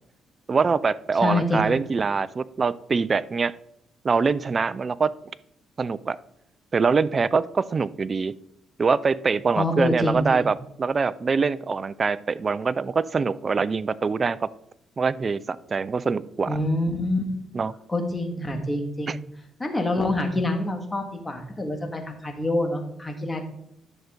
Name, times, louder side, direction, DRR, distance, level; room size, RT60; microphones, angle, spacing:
voice 1, 0.5-3.5 4.0-5.1 5.8-6.2 6.7-8.3 8.8-14.5 15.0-16.6 17.5-17.7 19.1-19.2, right 5 dB, 35° right, 18 dB, 0.4 m, -24 dB
voice 2, 1.2-1.8 9.6-10.5 16.5-17.2 17.9-19.2 19.6-23.5, left 1 dB, 20° left, 4 dB, 1.9 m, -26 dB
10.5 x 6.4 x 3.8 m, 0.75 s
cardioid pair, 90°, 0 cm